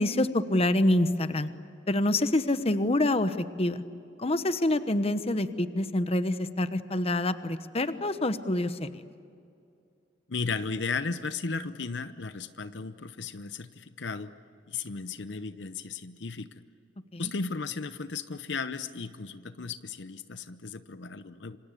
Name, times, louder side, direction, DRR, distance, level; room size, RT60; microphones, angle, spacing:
voice 1, 0.0-1.5 1.9-3.8 4.2-8.9 17.1-17.3, left 1 dB, 35° left, 11 dB, 1.0 m, -26 dB
voice 2, 10.3-14.3 14.7-16.6 17.2-21.6, left 4 dB, 70° left, 12 dB, 0.8 m, -35 dB
27.0 x 26.0 x 8.3 m, 2.5 s
head